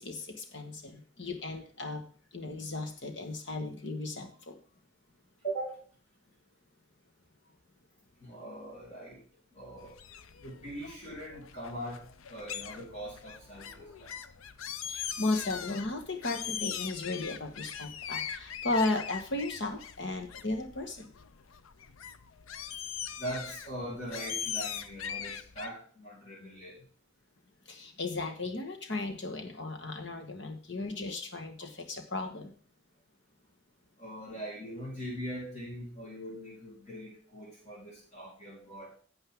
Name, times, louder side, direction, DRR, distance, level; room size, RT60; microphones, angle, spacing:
voice 1, 0.0-2.0 2.3-4.5 14.9-21.1 27.6-32.5, left 2 dB, 60° left, 4 dB, 1.5 m, -35 dB
voice 2, 5.4-5.8 8.2-9.2 9.5-10.0 10.3-12.0 12.3-14.2 23.2-26.9 34.0-39.0, right 1 dB, 35° left, -6 dB, 5.3 m, -41 dB
sound 1, 9.8-25.7, left 8 dB, 90° left, 0.6 m, -41 dB
12.0 x 7.8 x 3.7 m, 0.43 s
head